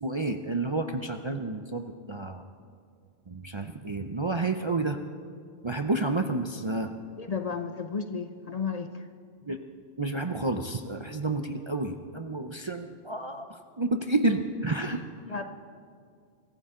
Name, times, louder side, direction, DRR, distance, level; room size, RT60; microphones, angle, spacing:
voice 1, 0.0-2.4 3.3-5.0 5.6-6.9 9.4-9.6 10.0-15.0, right 2 dB, 35° right, 5 dB, 0.5 m, -30 dB
voice 2, 7.2-9.0 15.3-15.4, left 5 dB, 40° left, 7 dB, 0.7 m, -33 dB
23.5 x 14.5 x 3.8 m, 2.3 s
omnidirectional pair, 1.1 m